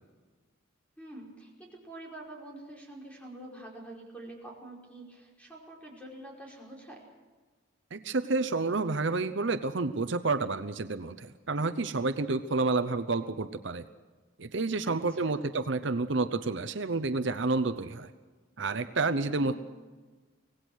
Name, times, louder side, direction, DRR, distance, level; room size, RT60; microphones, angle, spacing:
voice 1, 1.0-7.0 14.8-15.3 19.2-19.6, right 1 dB, 5° left, -2 dB, 5.0 m, -46 dB
voice 2, 7.9-13.8 14.4-18.1 18.6-19.5, right 3 dB, 60° right, 10 dB, 0.8 m, -29 dB
25.0 x 18.0 x 6.3 m, 1.3 s
head